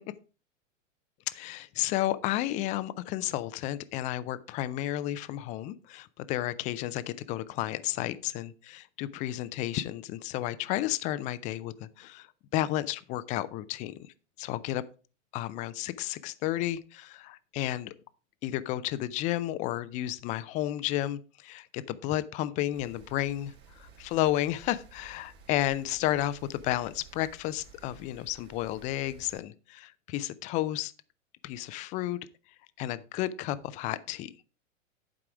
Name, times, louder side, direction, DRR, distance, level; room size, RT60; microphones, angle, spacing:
voice 1, 1.3-14.8 15.3-17.9 18.4-30.9 31.4-32.2 32.8-34.3, left 14 dB, 20° left, 15 dB, 0.3 m, -32 dB
Rain, 22.7-29.4, right 4 dB, 35° right, 2.8 m, -54 dB
11.0 x 4.8 x 4.8 m, 0.35 s
hypercardioid pair, 110°, 38 cm